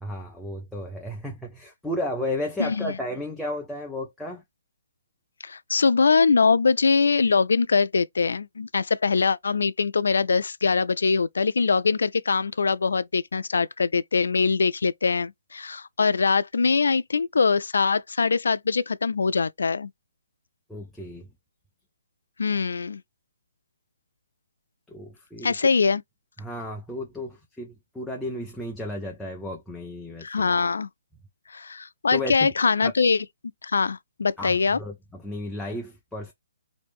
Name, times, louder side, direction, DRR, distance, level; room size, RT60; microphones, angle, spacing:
voice 1, 0.0-4.4 20.7-21.3 24.9-25.5 26.4-30.5 32.1-32.5 34.4-36.3, left 1 dB, ahead, 0.4 m, -33 dB
voice 2, 2.6-3.0 5.4-19.9 22.4-23.0 25.4-26.0 30.2-30.9 31.5-33.3 33.6-34.8, left 4 dB, 85° left, 0.3 m, -23 dB
3.1 x 2.6 x 3.4 m
hypercardioid pair, 170°, 0 cm